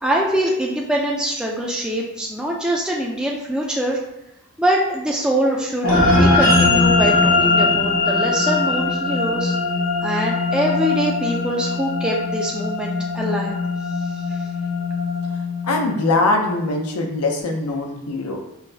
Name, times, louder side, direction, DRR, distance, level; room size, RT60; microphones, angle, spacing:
voice 1, 0.0-4.0 4.6-9.5 10.0-13.5 14.3-14.4, right 1 dB, 5° right, -3 dB, 0.3 m, -23 dB
sound 1, 5.8-16.5, left 3 dB, 70° left, 1.2 m, -20 dB
voice 2, 15.6-18.4, left 2 dB, 90° left, 2 dB, 0.7 m, -22 dB
5.5 x 2.2 x 2.7 m, 0.87 s
head